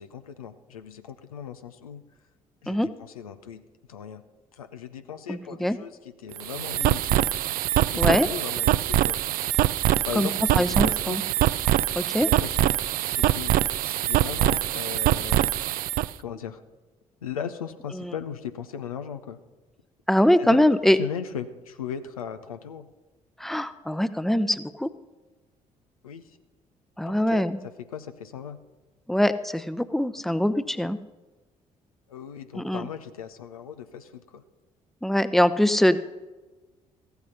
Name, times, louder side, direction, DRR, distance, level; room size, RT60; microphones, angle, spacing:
voice 1, 0.0-2.0 2.6-3.6 3.9-4.2 4.5-7.3 7.9-9.2 10.0-11.3 12.4-12.7 13.1-13.5 13.8-15.5 16.2-16.6 17.2-19.4 20.4-20.6 21.0-22.9 26.0-26.4 27.1-27.5 27.9-28.6 32.1-34.4, left 8 dB, 85° left, 9 dB, 0.6 m, -37 dB
voice 2, 5.3-5.8 8.0-8.3 10.2-10.3 10.5-11.2 12.0-12.3 20.1-21.0 23.4-24.9 27.0-27.6 29.1-31.0 32.5-32.9 35.0-36.0, left 1 dB, ahead, 13 dB, 0.7 m, -23 dB
sound 1, 6.3-16.1, right 14 dB, 55° right, 0.4 m, -24 dB
14.5 x 8.1 x 5.6 m, 1.2 s
figure-of-eight pair, 45°, 18 cm